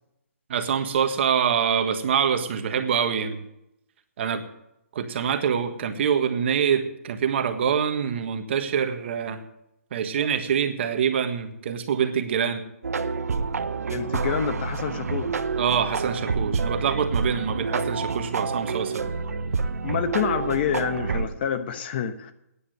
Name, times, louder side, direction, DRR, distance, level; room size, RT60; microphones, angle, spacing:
voice 1, 0.5-3.4 4.2-4.4 4.9-9.4 9.9-12.6 15.6-19.1, right 7 dB, 50° right, 7 dB, 1.6 m, -25 dB
sound 1, 12.8-21.3, right 4 dB, 80° right, 1.0 m, -28 dB
voice 2, 13.9-15.4 19.8-22.3, left 8 dB, 45° left, 9 dB, 1.1 m, -27 dB
10.0 x 8.6 x 9.6 m, 0.81 s
hypercardioid pair, 150°, 8 cm